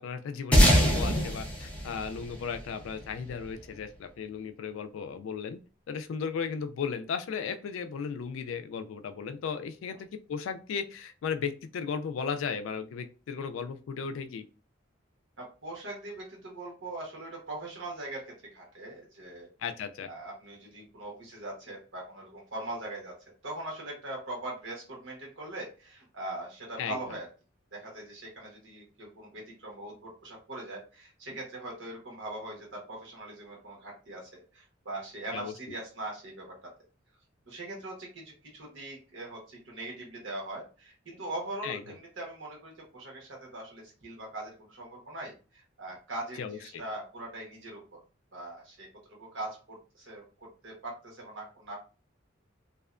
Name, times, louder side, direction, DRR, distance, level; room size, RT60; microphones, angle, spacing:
voice 1, 0.0-5.6 5.9-14.4 19.6-20.1 26.8-27.0 35.3-35.5 41.6-41.8 46.4-46.8, left 6 dB, 85° left, 9 dB, 0.3 m, -35 dB
sound 1, 0.5-3.3, equal, 5° left, 0.4 m, -24 dB
voice 2, 15.4-19.5 20.0-23.2 23.4-27.3 27.7-36.7 37.5-48.0 48.3-50.2 50.6-51.8, right 2 dB, 70° right, -1 dB, 1.1 m, -41 dB
2.7 x 2.1 x 2.4 m, 0.35 s
head